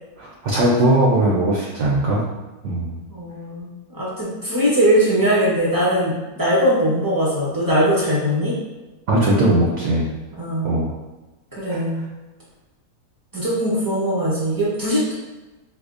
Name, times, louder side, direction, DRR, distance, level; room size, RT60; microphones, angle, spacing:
voice 1, 0.2-2.2 2.6-3.0 9.1-10.1 10.6-10.9, right 1 dB, 65° right, -4 dB, 0.8 m, -19 dB
voice 2, 3.1-8.5 10.4-10.8 11.5-12.0 13.3-15.1, equal, 35° right, -8 dB, 0.3 m, -20 dB
4.8 x 2.0 x 2.5 m, 1.1 s
omnidirectional pair, 1.7 m